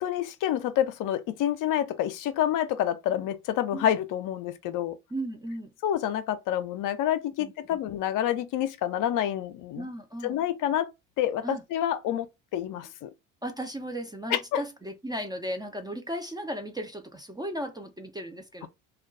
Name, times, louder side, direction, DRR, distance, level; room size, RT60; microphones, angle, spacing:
voice 1, 0.0-5.0 5.8-9.9 10.2-10.9 11.2-12.3 12.5-13.1 14.3-14.6, left 11 dB, 55° left, 0.5 m, -28 dB
voice 2, 5.1-5.7 7.4-7.8 9.8-10.4 11.4-11.6 13.4-18.7, right 1 dB, 10° right, 0.4 m, -36 dB
2.3 x 2.2 x 3.6 m
hypercardioid pair, 70°, 39 cm